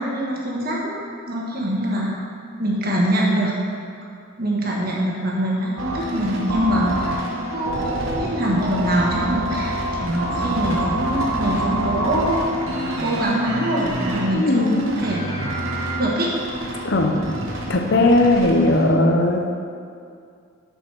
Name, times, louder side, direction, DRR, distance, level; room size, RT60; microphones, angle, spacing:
voice 1, 0.0-2.2 2.6-3.5 4.4-7.2 7.5-7.8 8.2-12.6 13.0-15.3 16.0-16.3, right 1 dB, 45° right, -4 dB, 1.4 m, -23 dB
sound 1, 5.8-18.9, right 1 dB, 80° right, 1.1 m, -27 dB
voice 2, 14.3-14.8 16.8-17.1 17.7-19.5, left 2 dB, 55° left, 3 dB, 0.6 m, -17 dB
6.4 x 5.2 x 6.2 m, 2.3 s
head